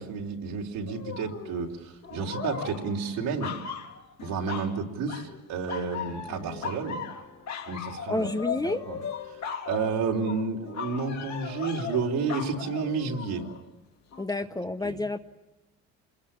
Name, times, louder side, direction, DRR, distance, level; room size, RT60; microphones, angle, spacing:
voice 1, 0.0-3.5 4.2-7.0 7.7-8.3 8.9-9.0 9.7-13.4 14.8-15.0, right 5 dB, 75° right, 0 dB, 3.7 m, -31 dB
sound 1, 0.9-1.6 2.0-4.8 5.1-5.4 5.7-13.6 14.1-14.2, left 7 dB, 55° left, 3.3 m, -37 dB
voice 2, 8.1-8.8 14.2-15.2, left 2 dB, 10° left, 9 dB, 1.0 m, -29 dB
26.0 x 22.0 x 8.8 m, 1.0 s
cardioid pair, 100°, 34 cm